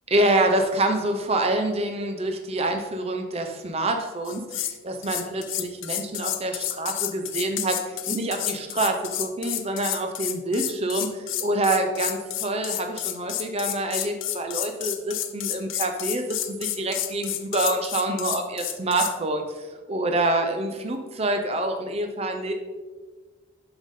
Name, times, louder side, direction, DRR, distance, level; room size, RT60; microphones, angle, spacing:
voice 1, 0.1-22.5, right 2 dB, 30° right, 5 dB, 0.7 m, -26 dB
sound 1, 4.2-4.8 5.0-19.1, left 13 dB, 60° left, 0.6 m, -30 dB
12.5 x 5.3 x 3.7 m, 1.3 s
head